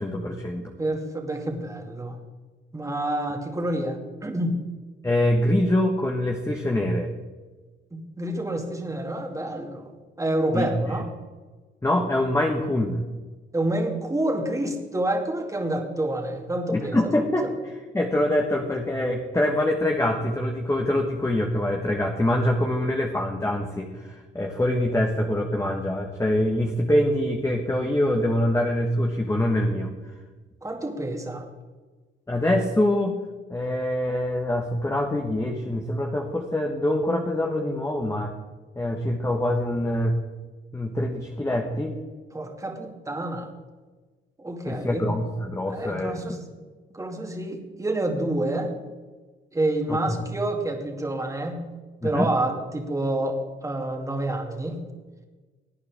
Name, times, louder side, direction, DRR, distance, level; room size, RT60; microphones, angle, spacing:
voice 1, 0.0-0.7 5.0-7.1 10.5-10.9 11.8-13.0 16.7-29.9 32.3-33.2 33.5-38.3 38.7-40.2 40.7-41.9 44.7-46.4 49.9-50.0 52.0-52.3, left 1 dB, 15° left, 2 dB, 1.4 m, -24 dB
voice 2, 0.8-2.2 2.7-4.6 7.9-9.9 10.2-11.1 13.5-17.0 17.4-17.5 30.6-31.4 42.3-43.5 44.4-45.1 45.7-46.4 46.9-48.7 49.5-51.7 52.0-54.8, right 1 dB, 15° right, 2 dB, 2.3 m, -28 dB
18.0 x 9.5 x 3.6 m, 1.3 s
cardioid pair, 90°, 20 cm